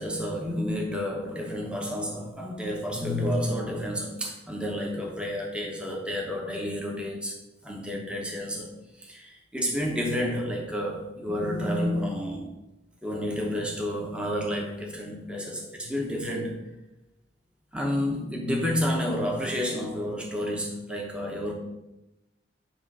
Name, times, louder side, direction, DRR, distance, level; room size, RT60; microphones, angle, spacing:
voice 1, 0.0-7.3 7.6-8.7 9.0-12.5 13.0-16.6 17.7-21.5, equal, 5° right, -1 dB, 0.8 m, -30 dB
9.0 x 3.0 x 5.4 m, 0.97 s
head